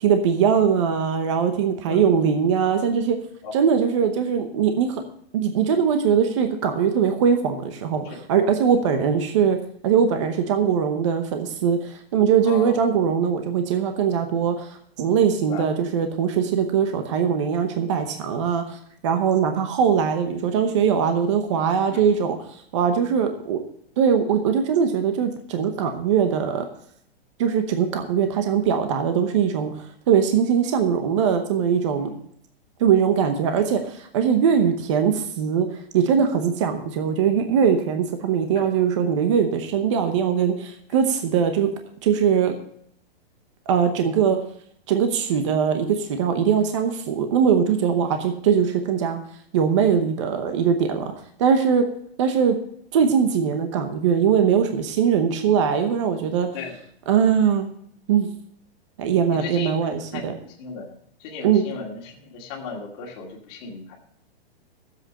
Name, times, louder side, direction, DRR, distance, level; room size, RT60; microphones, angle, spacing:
voice 1, 0.0-3.2 3.5-5.0 5.3-9.6 9.8-14.7 15.0-18.8 19.0-22.4 22.7-23.6 24.0-26.7 27.4-29.7 30.1-32.1 32.8-35.7 35.9-41.7 42.0-42.5 43.7-44.4 44.9-49.2 49.5-51.1 51.4-51.8 52.2-52.6 52.9-56.5 57.1-57.7 58.1-58.3 59.0-60.3 61.4-61.6, right 7 dB, 30° right, 6 dB, 0.9 m, -21 dB
voice 2, 12.4-12.8 15.3-15.7 19.1-19.6 21.9-22.1 32.0-32.2 38.5-38.7 53.0-53.1 56.5-56.8 59.3-60.3 60.6-60.9 61.2-63.9, left 5 dB, 25° left, -1 dB, 2.3 m, -36 dB
12.0 x 7.8 x 6.3 m, 0.66 s
hypercardioid pair, 175°, 31 cm